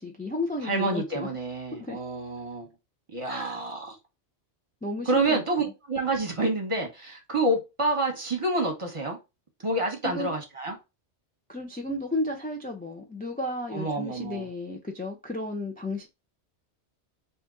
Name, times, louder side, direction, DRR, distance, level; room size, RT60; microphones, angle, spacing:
voice 1, 0.0-1.3 1.7-2.0 3.3-3.6 4.8-5.4 10.0-10.3 11.5-16.1, left 2 dB, 15° left, 0.3 m, -33 dB
voice 2, 0.6-2.7 3.1-4.0 5.1-9.2 9.6-10.7 13.7-14.5, right 2 dB, 30° right, 0.9 m, -28 dB
3.6 x 2.7 x 3.7 m
omnidirectional pair, 1.2 m